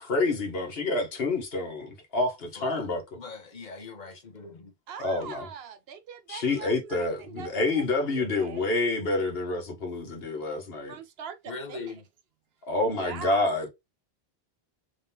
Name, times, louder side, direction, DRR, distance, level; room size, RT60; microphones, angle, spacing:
voice 1, 0.0-3.0 5.0-5.5 6.3-11.0 12.7-13.7, left 2 dB, 70° left, 1.4 m, -28 dB
voice 2, 2.6-2.9 3.1-4.7 11.5-12.0, left 4 dB, 50° left, 0.9 m, -40 dB
voice 3, 4.9-8.6 10.9-11.9 13.0-13.5, right 7 dB, 75° right, 0.9 m, -42 dB
3.6 x 3.2 x 2.8 m
omnidirectional pair, 1.0 m